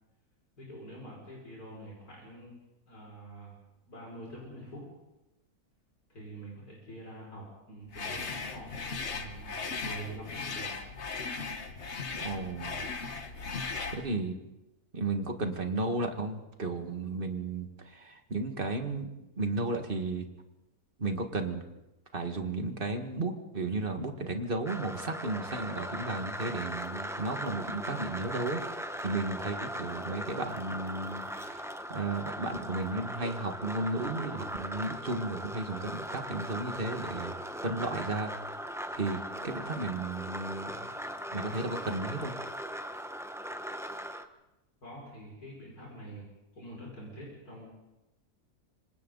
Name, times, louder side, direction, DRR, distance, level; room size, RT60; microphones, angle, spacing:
voice 1, 0.6-2.5 2.9-3.5 3.9-4.8 6.1-10.8 44.8-46.3 46.5-47.7, right 1 dB, 80° left, -3 dB, 6.3 m, -46 dB
sound 1, 7.9-14.1, left 4 dB, 50° left, 1.6 m, -37 dB
voice 2, 12.2-12.8 13.9-14.3 14.9-19.1 19.4-20.3 21.0-21.6 22.1-37.3 37.6-38.3 38.9-40.9 41.3-42.3, right 2 dB, 35° right, 5 dB, 2.0 m, -34 dB
sound 2, 24.7-44.2, equal, ahead, 0.7 m, -39 dB
27.5 x 25.0 x 4.0 m, 0.98 s
omnidirectional pair, 1.6 m